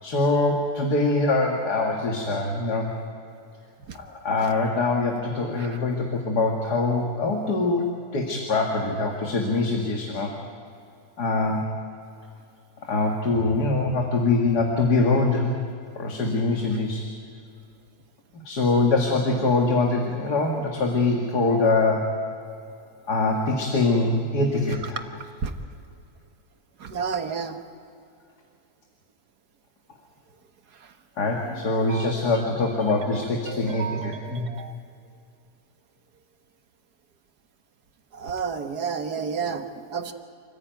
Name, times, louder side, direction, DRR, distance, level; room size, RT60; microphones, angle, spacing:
voice 1, 0.0-2.9 3.9-7.8 8.1-10.3 11.2-11.7 12.9-15.5 16.0-17.0 18.4-22.1 23.1-25.0 31.2-34.5, left 3 dB, 85° left, 1 dB, 2.5 m, -23 dB
voice 2, 26.8-27.6 31.5-32.5 32.8-32.9 33.5-34.7 38.1-40.1, right 6 dB, 80° right, 7 dB, 1.9 m, -32 dB
27.5 x 15.5 x 9.2 m, 2.5 s
omnidirectional pair, 1.7 m